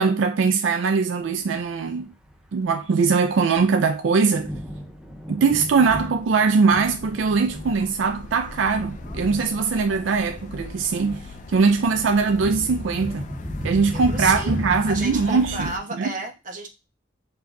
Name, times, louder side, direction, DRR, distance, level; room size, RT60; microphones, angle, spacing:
voice 1, 0.0-2.1 2.5-4.5 5.3-13.3 13.6-16.1, right 5 dB, 80° right, 0.4 m, -21 dB
Thunder, 1.4-15.1, equal, 5° right, 0.6 m, -36 dB
sound 1, 6.9-15.8, left 3 dB, 40° left, 0.5 m, -39 dB
voice 2, 13.9-14.6 14.9-16.7, right 2 dB, 45° right, 1.0 m, -32 dB
7.0 x 2.8 x 2.6 m
head